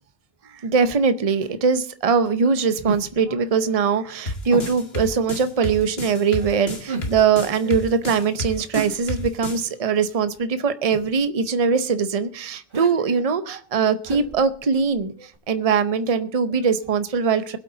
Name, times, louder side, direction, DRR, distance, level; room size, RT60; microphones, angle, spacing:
voice 1, 0.6-17.6, right 5 dB, 40° right, 12 dB, 0.8 m, -21 dB
sound 1, 2.8-3.3 4.5-4.9 6.9-7.4 8.7-9.5 10.9-11.2 12.7-13.0 14.0-15.0 15.3-15.4, right 4 dB, 55° right, 2.3 m, -33 dB
sound 2, 4.3-9.6, left 2 dB, 75° left, 2.4 m, -31 dB
21.5 x 8.2 x 3.8 m, 0.43 s
omnidirectional pair, 1.0 m